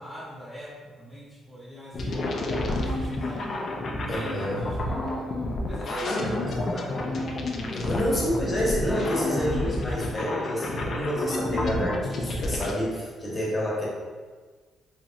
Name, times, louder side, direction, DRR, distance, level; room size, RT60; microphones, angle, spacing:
voice 1, 0.0-3.5 4.0-4.8 5.7-7.1 7.7-7.9, equal, 5° right, -6 dB, 0.6 m, -41 dB
sound 1, 1.9-12.7, left 2 dB, 55° left, 0.4 m, -30 dB
voice 2, 4.1-4.7 6.0-6.6 7.7-13.9, equal, 30° left, -5 dB, 1.0 m, -28 dB
2.9 x 2.7 x 2.5 m, 1.5 s
cardioid pair, 90°, 0 cm